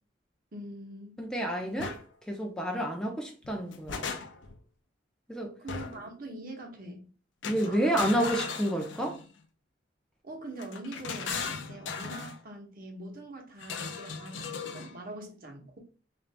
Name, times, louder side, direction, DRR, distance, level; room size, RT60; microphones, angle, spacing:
voice 1, 0.5-1.2 5.6-7.1 7.6-8.0 10.2-15.8, right 1 dB, 50° right, 1.0 m, -43 dB
voice 2, 1.2-2.0 2.3-4.2 5.3-5.5 7.4-9.2, right 1 dB, 5° left, 0.5 m, -29 dB
sound 1, 1.8-2.0 3.4-4.6 5.7-6.1 7.4-9.3 10.6-12.4 13.6-14.9, left 5 dB, 80° left, 0.5 m, -37 dB
3.7 x 2.6 x 3.3 m
head